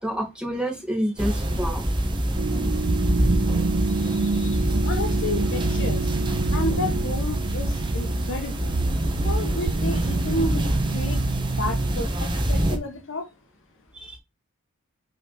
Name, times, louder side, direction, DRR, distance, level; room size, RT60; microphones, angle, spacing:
voice 1, 0.0-1.9 4.0-4.1 13.9-14.2, equal, 5° right, 2.2 m, -28 dB
sound 1, 1.2-12.8, right 1 dB, 20° right, 1.2 m, -25 dB
sound 2, 2.4-12.0, right 3 dB, 55° right, 0.5 m, -28 dB
voice 2, 3.9-6.1 6.5-8.7 9.2-11.3 11.6-13.3, left 1 dB, 60° left, 1.3 m, -32 dB
5.6 x 4.2 x 5.8 m
head